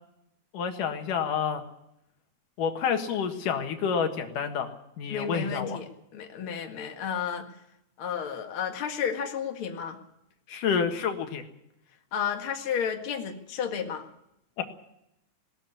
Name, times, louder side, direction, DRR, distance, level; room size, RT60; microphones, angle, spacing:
voice 1, 0.5-1.6 2.6-5.8 10.5-11.4 14.6-14.7, left 7 dB, 85° left, 5 dB, 3.2 m, -29 dB
voice 2, 5.1-7.5 8.0-10.0 12.1-14.1, left 7 dB, 45° left, 4 dB, 2.5 m, -32 dB
19.5 x 14.0 x 9.8 m, 0.81 s
omnidirectional pair, 3.6 m